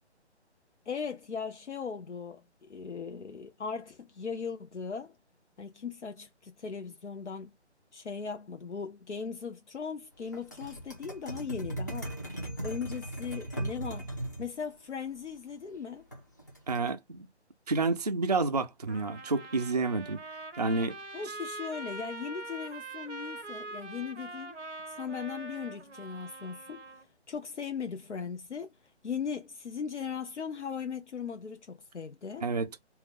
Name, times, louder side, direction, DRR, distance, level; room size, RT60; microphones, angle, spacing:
voice 1, 0.9-5.1 5.6-7.5 7.9-12.1 12.6-14.1 14.4-16.0 21.1-24.6 24.9-26.8 27.3-28.7 29.0-32.5, left 6 dB, 80° left, 0.6 m, -38 dB
sound 1, 10.3-14.5 16.1-16.9, right 1 dB, 15° left, 0.5 m, -38 dB
voice 2, 16.7-17.3 17.7-20.2 20.6-21.0 32.4-32.8, right 3 dB, 40° right, 0.4 m, -29 dB
Trumpet, 18.9-27.0, right 2 dB, 90° right, 0.9 m, -43 dB
3.6 x 2.1 x 4.1 m
figure-of-eight pair, 145°, 34 cm